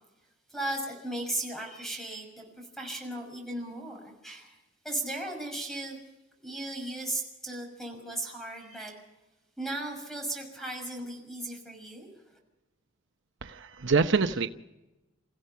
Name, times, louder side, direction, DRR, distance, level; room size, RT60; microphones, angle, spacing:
voice 1, 0.5-4.6 4.8-6.0 6.4-9.0 9.6-12.4, right 1 dB, ahead, 3 dB, 6.1 m, -36 dB
voice 2, 13.4-14.5, right 4 dB, 65° right, 8 dB, 0.8 m, -25 dB
29.0 x 15.5 x 5.8 m, 1.0 s
head